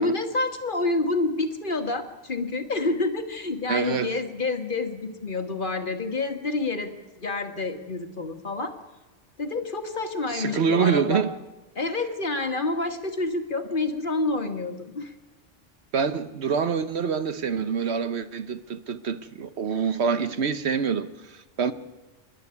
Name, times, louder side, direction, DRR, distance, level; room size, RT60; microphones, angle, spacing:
voice 1, 0.0-6.9 7.2-8.7 9.4-11.3 11.7-15.1, left 3 dB, 45° left, 1.7 m, -28 dB
voice 2, 3.7-4.1 10.3-11.3 15.9-21.7, right 6 dB, 65° right, 1.1 m, -26 dB
27.0 x 11.5 x 9.6 m
omnidirectional pair, 1.2 m